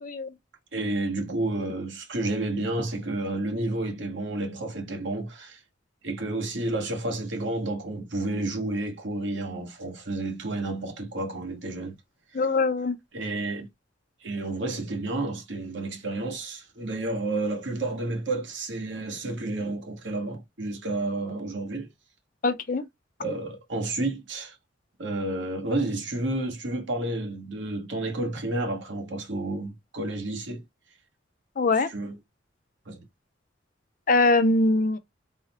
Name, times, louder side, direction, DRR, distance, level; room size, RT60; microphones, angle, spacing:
voice 1, 0.0-0.3 12.3-13.0 22.4-22.8 31.6-31.9 34.1-35.0, left 3 dB, 45° left, 0.5 m, -22 dB
voice 2, 0.7-5.6 6.0-11.9 13.1-13.7 14.2-21.9 23.2-24.6 25.0-30.6 31.9-32.1 32.9-33.0, right 2 dB, 70° right, 1.1 m, -30 dB
3.9 x 2.1 x 4.1 m
head